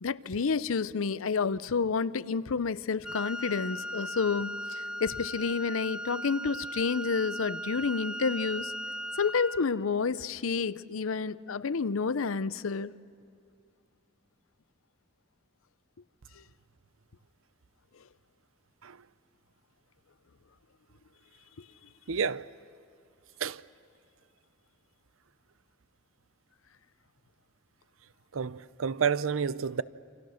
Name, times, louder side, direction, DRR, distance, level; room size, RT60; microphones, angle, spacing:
voice 1, 0.0-8.7 9.2-12.9, left 5 dB, 85° left, 0.6 m, -30 dB
Wind instrument woodwind instrument, 3.0-9.7, equal, 5° right, 0.9 m, -38 dB
voice 2, 22.1-22.5 23.4-23.6 28.3-29.8, right 6 dB, 80° right, 0.6 m, -30 dB
28.5 x 26.0 x 6.5 m
head